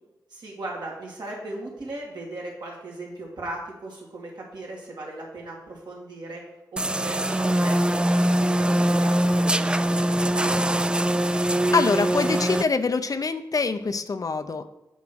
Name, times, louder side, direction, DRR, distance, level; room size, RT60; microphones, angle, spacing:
voice 1, 0.3-6.4 6.7-10.5, right 2 dB, 70° right, -3 dB, 2.6 m, -37 dB
sound 1, 6.8-12.6, right 1 dB, 10° right, 0.3 m, -22 dB
voice 2, 11.3-14.7, left 4 dB, 50° left, 10 dB, 0.5 m, -25 dB
7.1 x 3.9 x 6.1 m, 0.99 s
cardioid pair, 45°, 8 cm